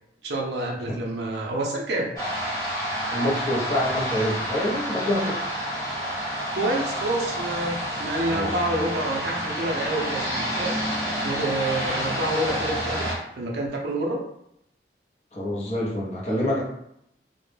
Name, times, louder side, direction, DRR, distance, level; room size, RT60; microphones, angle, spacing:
voice 1, 0.2-2.1 6.5-14.2, right 1 dB, 70° right, -1 dB, 0.5 m, -28 dB
sound 1, 2.2-13.1, equal, 20° left, 0.9 m, -29 dB
voice 2, 3.1-5.4 8.3-8.6 15.3-16.6, left 1 dB, 40° left, -4 dB, 0.6 m, -26 dB
2.1 x 2.0 x 3.1 m, 0.76 s
head